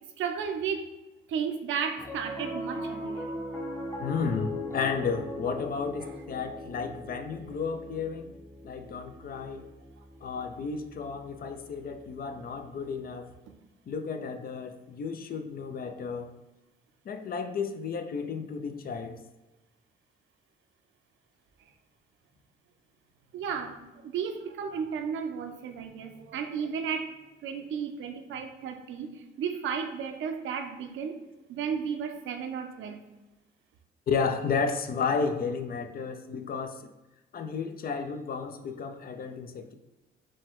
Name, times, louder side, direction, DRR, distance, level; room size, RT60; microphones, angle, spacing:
voice 1, 0.2-0.9 1.3-3.3 6.0-6.1 23.3-27.1 27.4-31.1 31.5-33.0, right 6 dB, 75° right, 5 dB, 0.6 m, -33 dB
Piano, 2.0-12.5, left 1 dB, 15° left, 0.7 m, -40 dB
voice 2, 4.0-8.3 8.6-9.7 10.2-13.3 13.9-16.3 17.0-19.2 34.1-36.9 37.3-39.7, left 5 dB, 50° left, 8 dB, 0.5 m, -32 dB
5.0 x 2.2 x 3.6 m, 1.0 s
cardioid pair, 90°, 20 cm